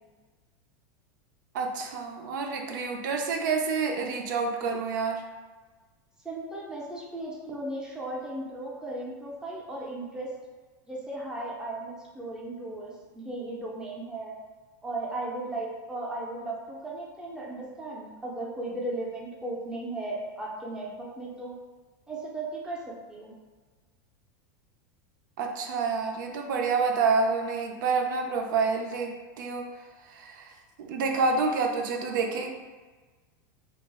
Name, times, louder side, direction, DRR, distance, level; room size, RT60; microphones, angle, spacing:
voice 1, 1.5-5.2 25.4-29.6 30.1-30.5 30.8-32.5, right 4 dB, 75° right, 3 dB, 0.4 m, -28 dB
voice 2, 6.2-10.3 10.9-14.3 14.8-21.5 22.1-23.3, right 2 dB, 5° right, -4 dB, 0.5 m, -36 dB
2.3 x 2.0 x 3.4 m, 1.3 s
supercardioid pair, 135°, 11 cm